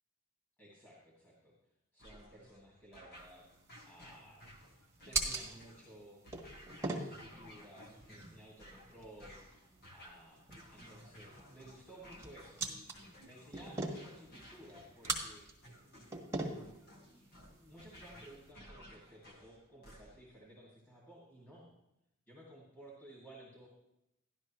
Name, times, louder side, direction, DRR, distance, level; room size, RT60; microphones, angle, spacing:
voice 1, 0.6-1.5 1.9-3.5 3.9-4.5 5.0-6.2 6.8-9.4 9.9-10.4 10.7-12.9 13.2-15.4 15.8-16.8 17.6-21.7 22.3-23.7, right 1 dB, 10° left, -6 dB, 2.4 m, -56 dB
sound 1, 2.0-20.4, equal, 50° left, 1.6 m, -57 dB
sound 2, 3.2-18.5, right 3 dB, 15° right, 1.4 m, -43 dB
12.0 x 12.0 x 3.1 m, 0.85 s
head